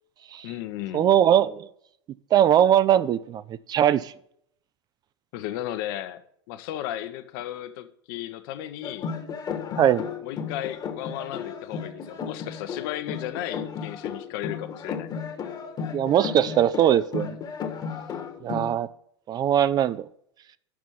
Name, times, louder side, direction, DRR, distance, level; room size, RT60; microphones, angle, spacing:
voice 1, 0.4-1.1 5.3-6.2 6.5-9.1 10.2-15.2, left 12 dB, 55° left, 0.8 m, -35 dB
voice 2, 0.9-1.7 2.3-3.4 3.7-4.1 9.8-10.0 15.9-17.4 18.4-18.9 19.3-20.0, right 10 dB, 30° right, 0.4 m, -20 dB
sound 1, 8.8-18.8, left 6 dB, 30° left, 1.3 m, -34 dB
6.1 x 6.1 x 6.9 m
hypercardioid pair, 95°, 14 cm